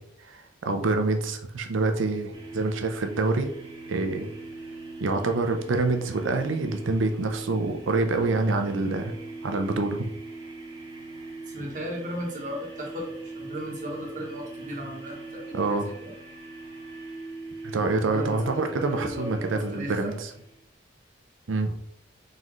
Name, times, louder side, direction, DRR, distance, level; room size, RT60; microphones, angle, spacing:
voice 1, 0.3-3.5 3.9-4.3 5.0-9.1 9.4-10.0 15.5-15.9 17.6-20.3 21.5-21.7, right 3 dB, 75° right, 6 dB, 0.6 m, -26 dB
sound 1, 2.3-20.6, right 3 dB, 20° right, 0.7 m, -41 dB
voice 2, 11.5-16.1 18.0-20.1, equal, 40° right, 0 dB, 1.1 m, -36 dB
4.0 x 3.8 x 3.1 m, 0.73 s
head